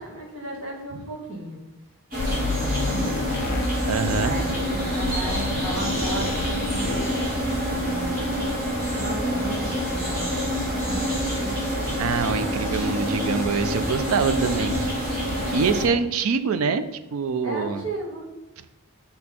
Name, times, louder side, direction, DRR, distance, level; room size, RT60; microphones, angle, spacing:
voice 1, 0.0-1.6 2.2-3.5 4.1-8.4 8.9-11.7 12.0-12.2 17.4-18.3, right 1 dB, 65° right, -3 dB, 1.9 m, -35 dB
sound 1, 2.1-15.8, equal, 40° right, 2.1 m, -26 dB
sound 2, 2.2-4.3 5.0-6.6 6.8-7.2, left 4 dB, 45° left, 0.3 m, -31 dB
voice 2, 3.9-4.6 5.1-5.2 12.0-14.9 15.5-16.8 17.1-17.8, right 5 dB, 80° right, 11 dB, 0.4 m, -25 dB
5.5 x 4.3 x 4.2 m, 1.1 s
head